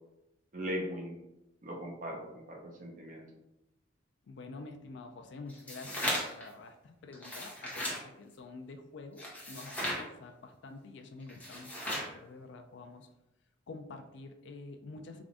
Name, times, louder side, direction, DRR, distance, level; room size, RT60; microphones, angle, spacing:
voice 1, 0.5-1.2 1.6-3.2, equal, 40° right, 0 dB, 0.7 m, -39 dB
voice 2, 4.3-13.1 13.7-15.2, left 3 dB, 65° left, 6 dB, 0.4 m, -48 dB
sound 1, 5.5-6.5 7.1-8.0 9.2-10.0 11.3-12.1, equal, 10° left, 0.9 m, -36 dB
3.6 x 2.5 x 3.5 m, 0.92 s
head